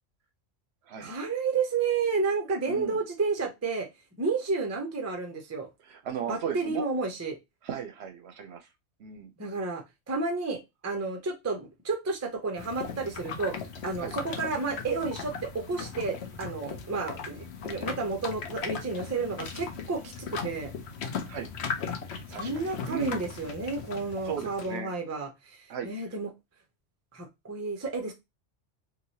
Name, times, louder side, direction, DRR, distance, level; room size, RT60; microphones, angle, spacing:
voice 1, 1.0-3.9 4.2-5.7 6.3-7.4 9.4-20.7 22.3-26.3 27.1-28.1, right 4 dB, 20° right, 4 dB, 0.4 m, -31 dB
voice 2, 2.7-3.0 5.8-6.9 7.6-8.7 9.0-9.3 14.0-14.1 21.3-21.5 22.3-23.2 24.2-24.9 25.7-26.1, right 8 dB, 65° right, 7 dB, 0.8 m, -36 dB
sound 1, 12.6-24.8, left 5 dB, 65° left, 0.9 m, -38 dB
3.0 x 2.7 x 2.7 m, 0.21 s
omnidirectional pair, 1.3 m